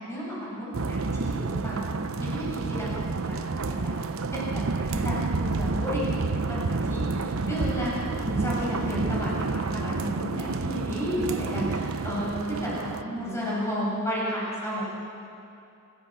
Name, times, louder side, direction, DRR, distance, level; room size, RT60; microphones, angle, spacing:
voice 1, 0.0-1.9 2.2-3.9 4.5-6.0 6.3-7.9 8.2-14.8, equal, 15° left, -7 dB, 7.7 m, -32 dB
sound 1, 0.7-13.0, right 3 dB, 70° right, 0.7 m, -29 dB
30.0 x 16.0 x 7.5 m, 2.7 s
head